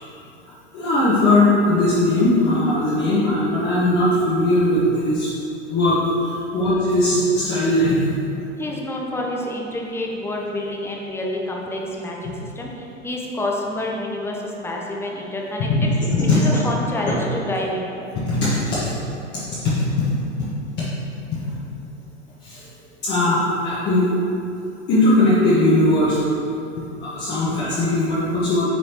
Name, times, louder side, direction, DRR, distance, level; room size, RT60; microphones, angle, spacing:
voice 1, 0.4-5.3 5.7-6.0 6.2-8.0 16.1-16.4 18.3-18.8 19.6-20.1 20.4-20.5 21.3-21.4 22.4-22.7 23.0-24.0 24.9-26.2 26.8-28.6, left 1 dB, 30° left, -10 dB, 1.4 m, -19 dB
voice 2, 8.6-15.7 16.3-18.1, left 1 dB, 5° left, -1 dB, 0.8 m, -28 dB
9.2 x 4.9 x 3.0 m, 2.8 s
figure-of-eight pair, 95°, 36 cm